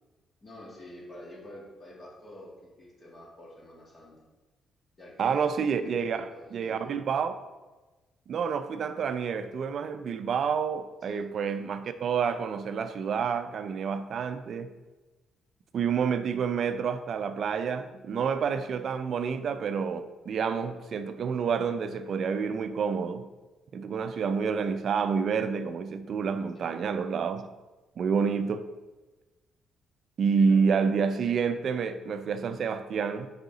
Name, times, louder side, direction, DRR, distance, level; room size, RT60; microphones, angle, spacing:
voice 1, 0.4-4.2 5.0-5.4 5.8-6.9 11.0-11.2 20.7-20.8 26.5-26.8 30.3-30.8, left 1 dB, 35° left, 2.0 m, -48 dB
voice 2, 5.2-7.3 8.3-14.7 15.7-23.3 23.7-27.5 28.0-28.7 30.2-33.3, right 6 dB, 60° right, 0.4 m, -28 dB
5.2 x 4.9 x 3.9 m
cardioid pair, 90°, 0 cm